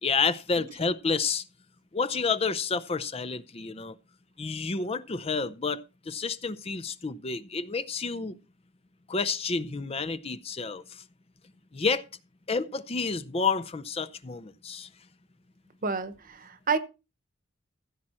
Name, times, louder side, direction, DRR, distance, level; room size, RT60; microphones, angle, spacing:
voice 1, 0.0-1.4 1.9-4.0 4.4-5.8 6.1-8.4 9.1-11.0 11.7-12.0 12.5-14.9, left 4 dB, 30° left, 0.6 m, -29 dB
voice 2, 15.8-16.8, right 4 dB, 40° right, 1.1 m, -29 dB
15.5 x 7.5 x 4.3 m
head